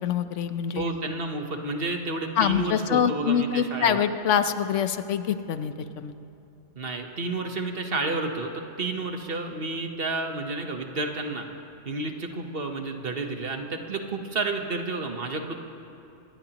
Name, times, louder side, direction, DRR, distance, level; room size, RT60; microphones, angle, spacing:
voice 1, 0.0-0.8 2.4-6.1, left 8 dB, 80° left, 10 dB, 1.0 m, -25 dB
voice 2, 0.8-4.0 6.8-11.5 11.8-15.5, right 3 dB, 55° right, 4 dB, 1.3 m, -31 dB
24.5 x 19.5 x 3.0 m, 2.7 s
omnidirectional pair, 1.2 m